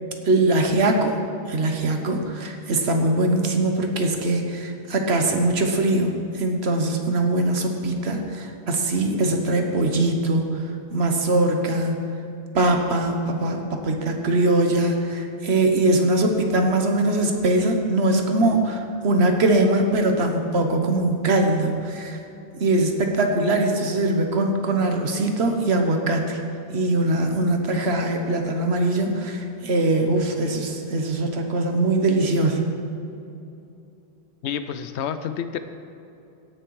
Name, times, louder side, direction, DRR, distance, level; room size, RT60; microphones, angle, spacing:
voice 1, 0.2-1.2 1.5-6.1 6.4-10.5 10.9-12.0 12.5-22.2 22.6-26.4 26.7-32.6, right 2 dB, 75° right, 4 dB, 1.4 m, -22 dB
voice 2, 34.4-35.6, left 8 dB, 90° left, 10 dB, 0.9 m, -29 dB
17.5 x 6.6 x 4.8 m, 2.8 s
omnidirectional pair, 1.1 m